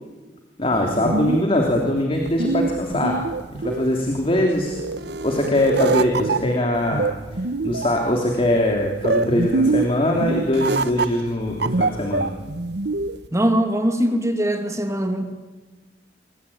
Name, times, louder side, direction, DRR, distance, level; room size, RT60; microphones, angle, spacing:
voice 1, 0.6-3.2 3.6-4.8 5.2-7.1 7.6-12.3, left 1 dB, 30° left, 1 dB, 3.2 m, -21 dB
sound 1, 0.7-13.3, right 3 dB, 65° right, 1.0 m, -25 dB
voice 2, 13.3-15.3, equal, 15° right, 6 dB, 2.4 m, -21 dB
28.0 x 24.0 x 8.7 m, 1.3 s
head